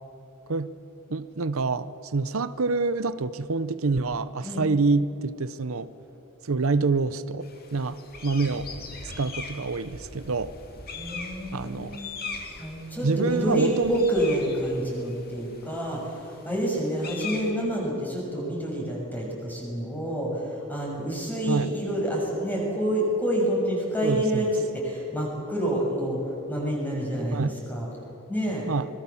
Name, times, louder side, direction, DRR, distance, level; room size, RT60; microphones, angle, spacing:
voice 1, 1.1-5.9 6.4-7.5 7.7-8.8 9.0-10.5 11.5-12.0 13.0-14.0 21.5-21.7 24.0-24.5 27.3-27.5 28.7-28.9, right 3 dB, 85° right, 14 dB, 0.8 m, -27 dB
sound 1, 7.4-17.5, left 4 dB, 45° left, 2.7 m, -41 dB
voice 2, 10.9-12.3 12.6-26.2 26.5-27.9 28.3-28.7, right 1 dB, 10° left, -2 dB, 6.5 m, -28 dB
25.5 x 21.5 x 7.2 m, 3.0 s
head